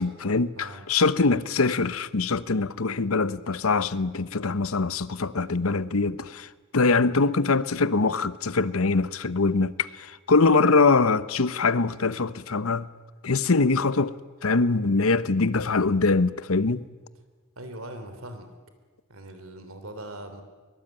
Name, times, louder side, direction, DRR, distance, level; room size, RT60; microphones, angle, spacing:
voice 1, 0.0-12.9 13.2-14.1 14.4-16.8, left 3 dB, 80° left, 0.9 m, -23 dB
voice 2, 0.5-0.9 17.5-18.5 19.1-20.4, right 1 dB, 80° right, 3.3 m, -40 dB
23.5 x 22.5 x 9.0 m
head